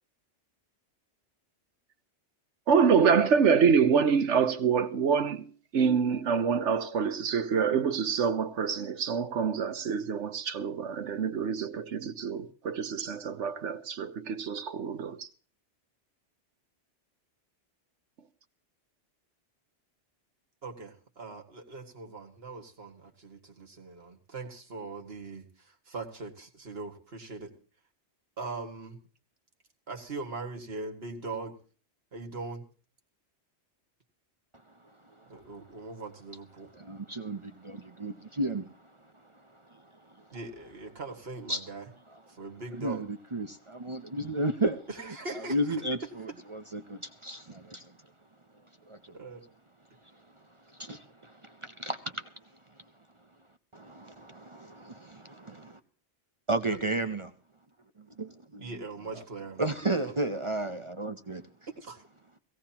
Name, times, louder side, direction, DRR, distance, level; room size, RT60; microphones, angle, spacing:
voice 1, 2.7-5.5 5.7-15.3, right 6 dB, 85° right, 1.3 m, -26 dB
voice 2, 20.6-27.5 28.4-29.0 29.9-31.6 32.1-32.6 35.3-36.7 40.3-41.9 42.3-43.1 44.9-45.6 49.1-49.5 56.7-56.8 58.6-60.2 61.8-62.1, right 3 dB, 60° right, 2.1 m, -41 dB
voice 3, 36.8-40.3 41.5-41.6 42.8-44.9 45.3-48.0 48.9-49.1 50.7-52.3 53.7-55.8 56.5-57.3 58.0-58.6 59.6-61.5, right 1 dB, 35° right, 0.6 m, -34 dB
18.0 x 17.0 x 2.9 m
omnidirectional pair, 1.2 m